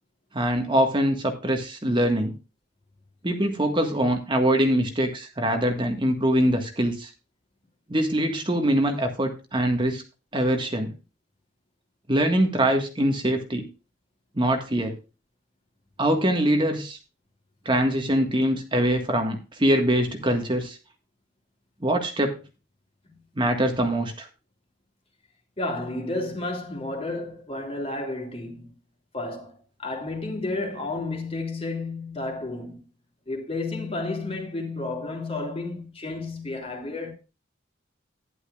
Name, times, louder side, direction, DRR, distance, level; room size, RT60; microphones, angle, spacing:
voice 1, 0.3-2.4 3.2-7.1 7.9-10.0 10.3-10.9 12.1-13.7 14.3-14.9 16.0-17.0 17.6-20.8 21.8-22.4 23.4-24.3, right 1 dB, 25° right, 1.6 m, -23 dB
voice 2, 25.6-28.7 29.1-32.8 33.3-37.1, left 2 dB, 30° left, 3.1 m, -31 dB
12.0 x 11.0 x 2.4 m
head